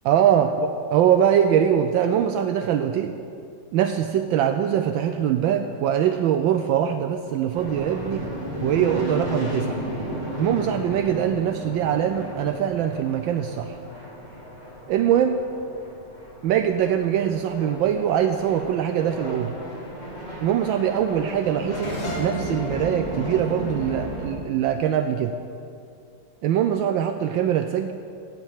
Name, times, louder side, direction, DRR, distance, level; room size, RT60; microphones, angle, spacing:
voice 1, 0.0-3.1 3.7-8.2 8.6-9.8 10.4-13.7 14.9-15.4 16.4-19.5 20.4-25.4 26.4-27.9, right 9 dB, 75° right, 7 dB, 1.3 m, -22 dB
sound 1, 7.5-24.3, equal, 20° right, 2.6 m, -34 dB
sound 2, 21.8-25.1, left 1 dB, 75° left, 2.2 m, -38 dB
16.0 x 5.4 x 7.4 m, 2.4 s
omnidirectional pair, 2.2 m